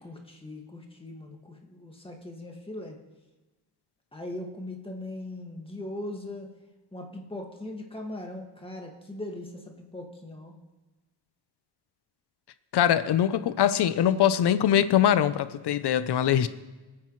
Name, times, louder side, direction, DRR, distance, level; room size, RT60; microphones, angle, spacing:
voice 1, 0.0-3.0 4.1-6.5 6.9-9.6 9.9-10.5, left 1 dB, 15° left, 1 dB, 1.9 m, -39 dB
voice 2, 12.7-16.5, left 10 dB, 75° left, 14 dB, 0.7 m, -22 dB
24.5 x 9.7 x 3.2 m, 1.2 s
wide cardioid pair, 130°, 40 cm